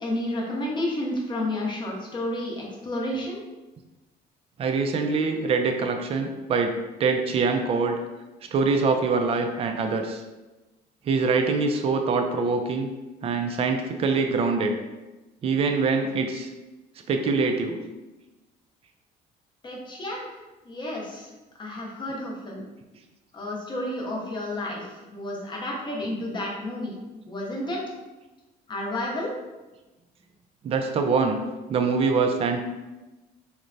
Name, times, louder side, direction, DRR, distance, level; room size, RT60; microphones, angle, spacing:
voice 1, 0.0-3.4 19.6-20.4 20.6-21.3 21.6-22.7 23.3-27.0 27.3-27.8 28.7-29.3, left 1 dB, 25° left, -2 dB, 0.7 m, -31 dB
voice 2, 4.6-6.7 7.0-8.0 8.5-10.2 11.1-12.9 13.2-14.8 15.4-16.5 17.1-17.8 30.6-31.4 31.7-32.6, right 4 dB, 35° right, 5 dB, 0.3 m, -24 dB
3.1 x 2.1 x 2.5 m, 1.1 s
cardioid pair, 110°, 17 cm